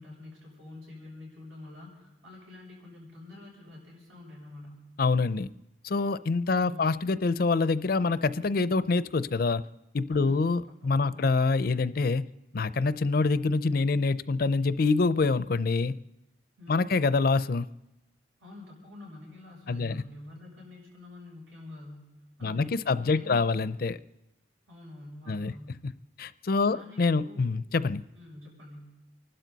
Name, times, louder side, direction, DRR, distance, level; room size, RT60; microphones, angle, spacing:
voice 1, 0.0-4.9 6.6-7.0 10.1-11.3 16.6-17.0 18.4-22.1 22.4-23.8 24.7-25.8 26.7-27.5 28.1-28.9, left 2 dB, 90° right, -3 dB, 7.3 m, -47 dB
voice 2, 5.0-5.5 5.8-9.6 9.9-12.2 12.5-16.0 16.7-17.7 19.7-20.0 22.4-24.0 25.3-25.5 26.2-28.0, left 3 dB, 50° left, 15 dB, 0.5 m, -26 dB
28.5 x 12.0 x 4.0 m, 0.96 s
head